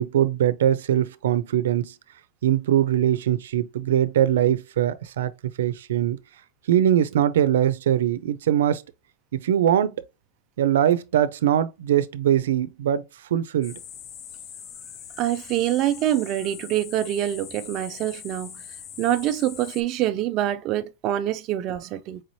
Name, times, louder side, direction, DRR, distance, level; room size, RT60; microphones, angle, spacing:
voice 1, 0.0-1.9 2.4-5.3 5.6-6.2 6.7-8.8 9.4-10.0 10.6-13.0 13.3-13.8, right 10 dB, 85° right, 0.6 m, -22 dB
sound 1, 13.6-19.8, left 8 dB, 25° left, 0.5 m, -42 dB
voice 2, 15.2-18.6 19.0-22.2, right 12 dB, 35° right, 0.3 m, -25 dB
4.7 x 3.1 x 2.7 m
supercardioid pair, 155°, 0 cm